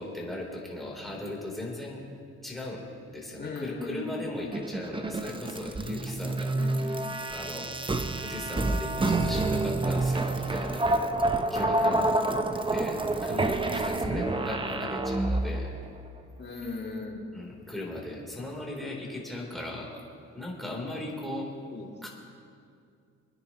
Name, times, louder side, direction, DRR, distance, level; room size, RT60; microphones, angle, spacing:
voice 1, 0.0-2.0 2.4-2.8 3.1-6.6 6.9-7.0 7.3-7.7 8.1-11.0 11.5-12.0 12.6-15.7 17.3-20.0 20.3-21.5 22.0-22.1, left 1 dB, ahead, -3 dB, 3.5 m, -37 dB
voice 2, 3.4-4.3 6.5-6.9 11.8-12.3 14.1-14.5 16.4-17.3 21.7-21.9, left 3 dB, 35° left, -1 dB, 2.4 m, -38 dB
sound 1, 4.5-15.8, right 2 dB, 15° right, 0.8 m, -28 dB
27.0 x 9.9 x 3.0 m, 2.3 s
cardioid pair, 90°, 30 cm